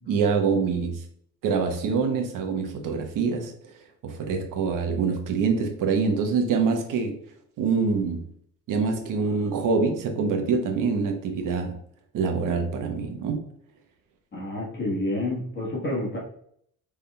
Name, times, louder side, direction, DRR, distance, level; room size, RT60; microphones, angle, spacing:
voice 1, 0.1-1.0 1.4-3.5 4.0-7.1 7.6-8.3 8.7-11.7 12.1-13.5, right 5 dB, 75° right, 4 dB, 0.9 m, -25 dB
voice 2, 14.3-16.2, left 1 dB, 35° left, -3 dB, 1.4 m, -29 dB
5.5 x 3.5 x 2.3 m, 0.67 s
cardioid pair, 145°, 32 cm